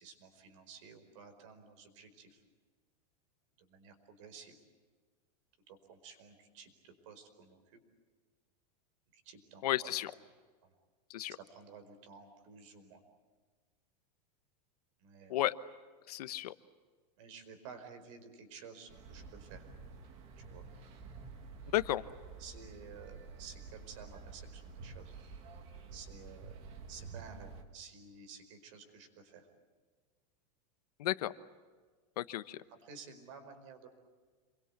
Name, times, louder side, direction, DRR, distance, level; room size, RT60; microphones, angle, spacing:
voice 1, 0.0-2.4 3.6-4.6 5.7-7.8 9.1-9.9 10.6-10.7 11.3-13.0 15.0-15.4 17.2-19.7 20.4-20.6 22.4-25.1 25.9-29.5 32.7-33.9, right 5 dB, 50° right, 8 dB, 4.9 m, -53 dB
voice 2, 9.6-10.1 11.1-11.3 15.3-15.6 16.1-16.5 21.7-22.0 31.0-31.3 32.2-32.6, left 14 dB, 70° left, 13 dB, 1.1 m, -33 dB
sound 1, 18.9-27.6, right 4 dB, 30° right, 2.1 m, -50 dB
28.0 x 23.0 x 8.3 m, 1.5 s
supercardioid pair, 180°, 21 cm